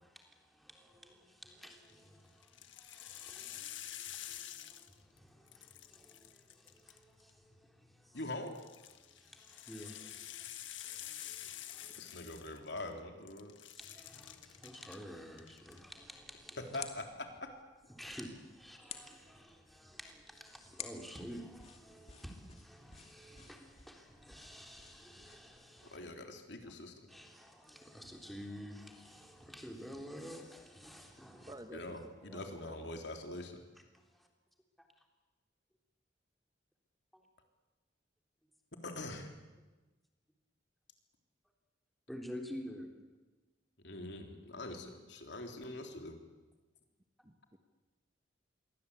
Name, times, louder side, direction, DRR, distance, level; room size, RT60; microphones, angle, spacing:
voice 1, 0.0-8.2 9.0-12.2 13.7-16.8 17.9-26.1 26.6-26.7 27.1-31.5 34.1-34.3 37.1-37.2 42.1-42.9, equal, ahead, 2 dB, 3.5 m, -51 dB
sound 1, 1.6-1.9 2.4-5.2 5.5-7.3 8.5-13.0 13.3-15.0 15.3-15.8, left 12 dB, 85° left, 1.6 m, -48 dB
voice 2, 8.1-8.6 12.0-13.6 16.6-17.5 25.8-27.1 31.7-33.6 38.8-39.3 43.8-46.2, left 2 dB, 65° left, 4 dB, 3.6 m, -43 dB
sound 2, 15.7-25.7, left 7 dB, 35° left, 2.3 m, -54 dB
voice 3, 31.5-33.1 47.2-47.6, right 1 dB, 20° right, 7 dB, 1.4 m, -52 dB
27.5 x 23.0 x 8.5 m, 1.2 s
head